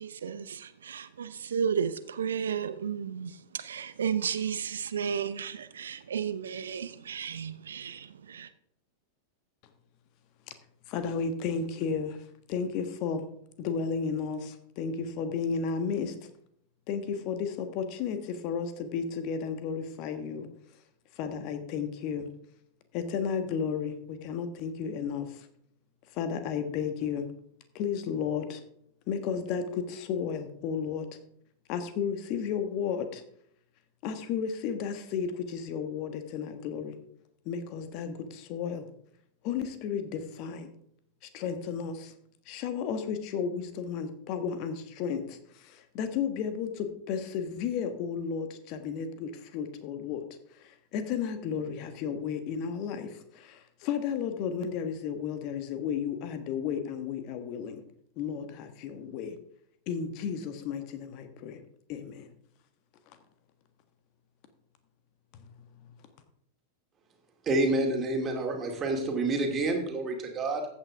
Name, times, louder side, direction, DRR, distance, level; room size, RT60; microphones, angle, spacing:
voice 1, 0.0-8.5, right 7 dB, 65° right, 13 dB, 0.6 m, -33 dB
voice 2, 10.9-12.2 12.5-13.2 13.6-16.1 16.9-20.5 21.2-22.3 22.9-25.5 26.1-27.3 27.7-28.6 29.1-31.1 31.7-33.2 34.0-37.0 37.4-38.8 39.4-40.7 41.2-42.1 42.5-50.2 50.6-57.8 58.2-59.4 59.9-61.6 61.9-62.3 65.3-65.5 65.8-65.9, left 6 dB, 40° left, 9 dB, 1.5 m, -33 dB
voice 3, 67.5-70.7, right 2 dB, 25° right, 3 dB, 2.4 m, -28 dB
14.5 x 8.6 x 3.6 m, 0.71 s
figure-of-eight pair, 90°, 0 cm